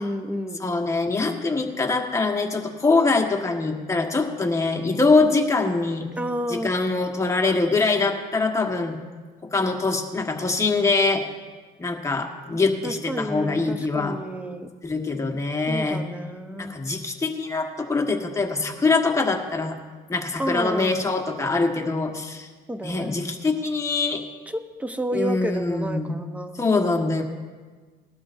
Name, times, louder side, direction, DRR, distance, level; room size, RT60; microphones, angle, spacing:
voice 1, 0.0-0.6 6.2-6.7 12.8-14.7 15.7-16.7 20.4-21.0 22.7-23.2 24.5-26.6, equal, 10° right, 8 dB, 0.9 m, -30 dB
voice 2, 0.6-6.1 6.5-9.0 9.5-11.2 11.8-14.2 14.8-16.0 16.6-19.8 20.1-22.5 22.8-24.2 25.1-26.2 26.6-27.2, left 3 dB, 15° left, 2 dB, 1.6 m, -23 dB
19.5 x 12.5 x 2.7 m, 1.4 s
cardioid pair, 110°, 17 cm